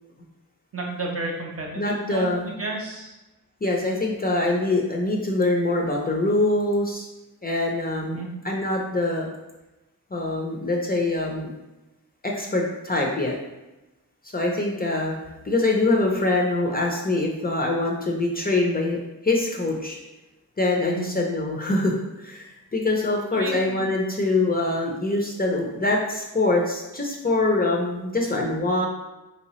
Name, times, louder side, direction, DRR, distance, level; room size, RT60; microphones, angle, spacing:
voice 1, 0.7-3.1 8.1-8.3 20.8-21.1 23.3-23.9, right 2 dB, 40° right, -1 dB, 0.8 m, -32 dB
voice 2, 1.8-2.5 3.6-7.1 7.4-9.3 10.1-11.5 12.2-13.3 14.3-15.2 15.4-20.0 20.6-28.9, left 2 dB, 25° left, -1 dB, 0.5 m, -24 dB
3.3 x 2.8 x 3.0 m, 1.0 s
wide cardioid pair, 85°, 35 cm